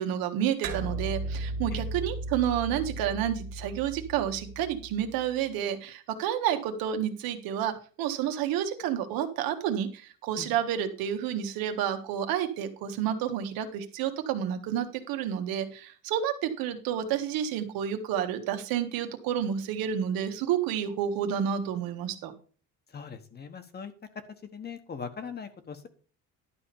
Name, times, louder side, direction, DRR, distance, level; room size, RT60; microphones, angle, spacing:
voice 1, 0.0-22.3, right 9 dB, 85° right, 6 dB, 1.7 m, -30 dB
sound 1, 0.6-5.4, right 2 dB, 70° right, 2.0 m, -36 dB
voice 2, 22.9-23.9 24.5-25.9, left 6 dB, 30° left, 9 dB, 1.3 m, -40 dB
11.5 x 4.3 x 7.0 m, 0.40 s
cardioid pair, 140°, 34 cm